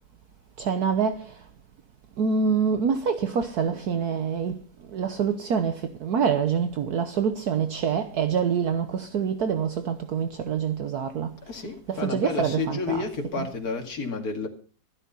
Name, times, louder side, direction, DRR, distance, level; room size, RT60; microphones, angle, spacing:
voice 1, 0.6-1.4 2.2-4.6 4.9-11.4 11.9-13.1 13.4-13.5, right 6 dB, 65° right, 1.4 m, -26 dB
voice 2, 11.5-14.5, left 4 dB, 55° left, 2.8 m, -31 dB
13.5 x 12.0 x 5.5 m
omnidirectional pair, 1.9 m